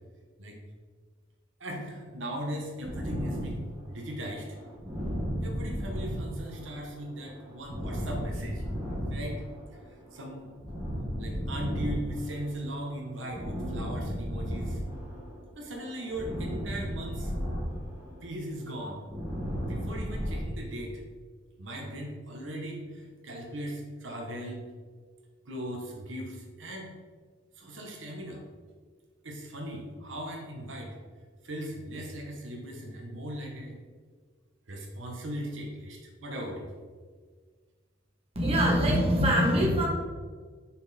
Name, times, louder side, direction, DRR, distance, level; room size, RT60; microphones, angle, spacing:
voice 1, 1.6-4.6 5.4-8.6 9.1-9.4 10.1-10.5 11.2-14.8 15.5-17.3 18.2-19.1 19.7-21.0 21.6-24.6 25.5-26.9 27.6-28.4 29.2-30.9 31.4-33.8 34.7-36.7, equal, 70° right, 0 dB, 1.1 m, -38 dB
sound 1, 2.8-15.4 15.7-20.4, equal, 10° right, 1.6 m, -35 dB
voice 2, 38.3-39.9, equal, 30° right, -2 dB, 1.1 m, -23 dB
5.3 x 4.3 x 4.2 m, 1.5 s
head